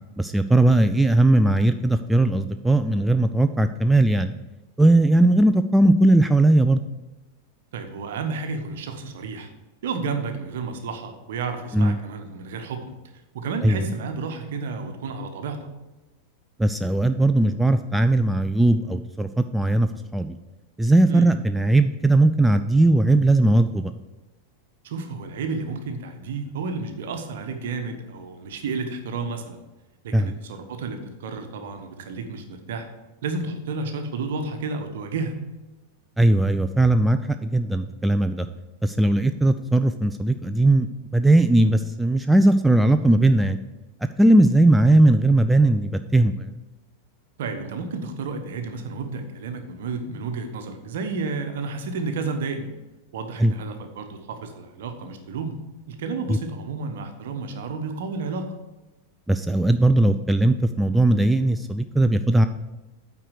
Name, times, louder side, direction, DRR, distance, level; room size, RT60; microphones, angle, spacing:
voice 1, 0.2-4.3 4.8-6.8 11.7-12.0 13.6-13.9 16.6-20.4 20.8-23.9 30.1-30.3 36.2-38.5 38.8-40.9 41.1-43.6 44.2-46.5 53.4-53.5 56.3-56.4 59.3-62.5, right 2 dB, 5° right, 8 dB, 0.3 m, -18 dB
voice 2, 7.7-9.5 9.8-12.9 13.3-15.6 21.1-21.3 24.8-29.6 30.0-32.9 33.2-35.4 47.4-52.7 53.1-55.6 55.9-58.5, right 4 dB, 55° right, 6 dB, 1.1 m, -31 dB
8.8 x 4.6 x 6.4 m, 1.1 s
figure-of-eight pair, 90°, 0 cm